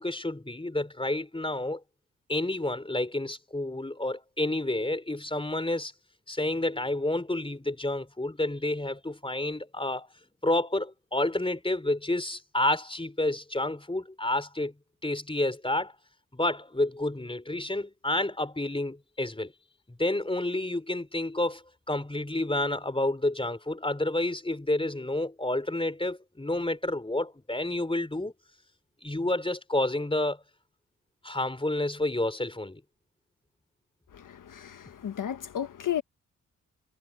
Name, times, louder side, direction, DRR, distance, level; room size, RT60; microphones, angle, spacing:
voice 1, 0.0-1.8 2.3-5.9 6.3-10.1 10.4-14.7 15.0-15.9 16.3-19.5 19.9-28.3 29.0-30.4 31.2-32.8, left 1 dB, 15° left, 4.0 m, -29 dB
voice 2, 34.1-36.0, left 10 dB, 75° left, 1.3 m, -33 dB
cardioid pair, 50°, 32 cm